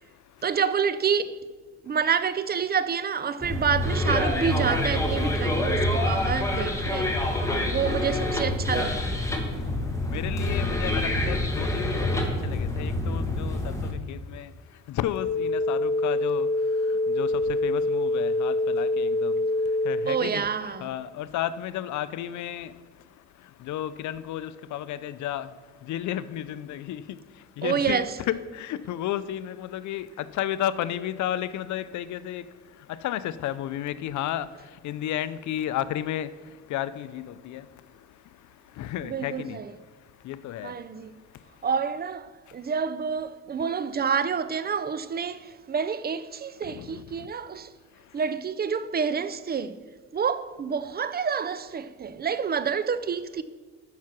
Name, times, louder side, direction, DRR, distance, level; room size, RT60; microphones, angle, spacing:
voice 1, 0.4-1.4 1.8-7.1 7.6-9.1 20.1-20.9 27.6-28.2 39.0-39.7 40.6-41.1 41.6-47.7 48.1-49.8 50.1-53.4, right 6 dB, 35° right, 0.4 m, -28 dB
sound 1, 3.4-13.9, left 1 dB, 10° left, 1.5 m, -26 dB
voice 2, 7.4-7.8 9.5-20.4 20.8-39.6 39.9-40.8 41.3-41.7 46.6-47.3 47.9-48.2, left 12 dB, 75° left, 0.5 m, -33 dB
sound 2, 15.1-20.1, left 2 dB, 35° left, 1.1 m, -25 dB
7.4 x 5.9 x 5.9 m
cardioid pair, 90°, 30 cm